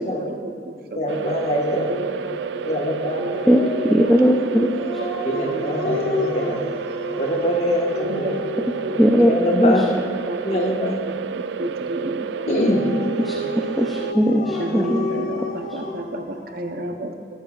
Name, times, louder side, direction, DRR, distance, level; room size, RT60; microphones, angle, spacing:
voice 1, 0.0-1.2 1.9-3.8 4.2-4.9 5.3-5.8 8.0-8.5 8.8-8.9 9.6-12.6 12.8-13.0 14.6-17.1, right 1 dB, 55° right, 5 dB, 0.8 m, -32 dB
voice 2, 0.9-1.9 2.6-3.2 5.2-6.6 7.2-8.3 9.2-9.8 10.4-11.0 12.5-12.8 14.5-14.6, equal, 40° left, 0 dB, 1.3 m, -23 dB
sound 1, 1.1-14.1, right 7 dB, 80° right, 0.3 m, -30 dB
Dog, 3.3-9.1 12.3-16.9, left 2 dB, 55° left, 1.0 m, -31 dB
voice 3, 3.5-5.0 9.0-9.3 9.6-9.8 13.2-15.0 15.7-15.8, equal, ahead, 0 dB, 0.5 m, -19 dB
12.5 x 12.0 x 2.4 m, 2.2 s
head